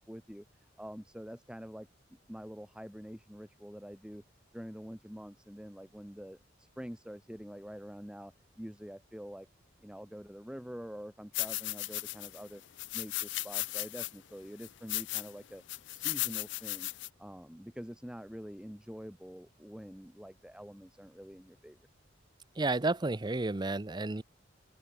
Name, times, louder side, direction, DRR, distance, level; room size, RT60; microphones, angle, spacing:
voice 1, 0.0-4.2 4.5-9.5 9.8-12.6 12.9-15.6 15.9-16.9 17.2-21.8, equal, 5° right, 1.2 m, -46 dB
sound 1, 11.3-12.4 12.8-14.1 14.6-15.3 15.7-17.1, left 20 dB, 65° left, 0.4 m, -36 dB
voice 2, 22.6-24.2, right 2 dB, 20° right, 0.6 m, -31 dB
open air
head